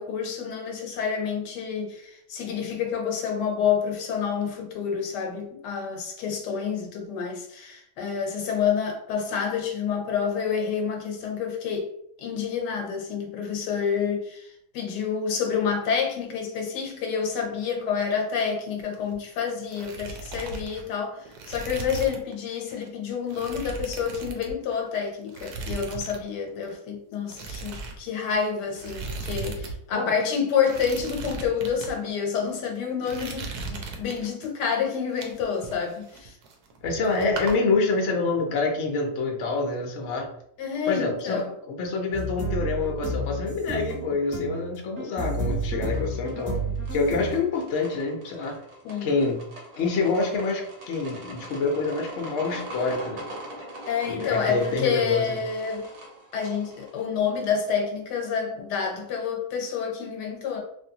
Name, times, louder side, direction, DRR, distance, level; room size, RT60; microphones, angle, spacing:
voice 1, 0.0-11.9 12.2-36.3 40.6-41.6 45.4-45.6 48.8-49.1 53.9-55.9 56.3-60.6, left 6 dB, 80° left, 1.3 m, -28 dB
sound 1, 18.8-19.4 19.6-22.3 22.7-22.9 23.3-24.9 25.3-26.2 26.5-26.7 27.3-29.7 30.0-30.1 30.6-31.9 32.5-32.7 33.0-34.5 34.9-36.8 37.1-37.5, right 4 dB, 75° right, 1.1 m, -37 dB
voice 2, 36.8-40.3 40.9-46.6 46.9-48.6 49.0-49.4 49.8-53.3 54.1-55.4, left 3 dB, 60° left, 0.8 m, -26 dB
Main Theme, 42.1-47.4, right 1 dB, 10° left, 1.0 m, -31 dB
sound 2, 45.8-57.0, right 1 dB, 50° right, 1.0 m, -42 dB
3.2 x 2.5 x 2.7 m
omnidirectional pair, 1.8 m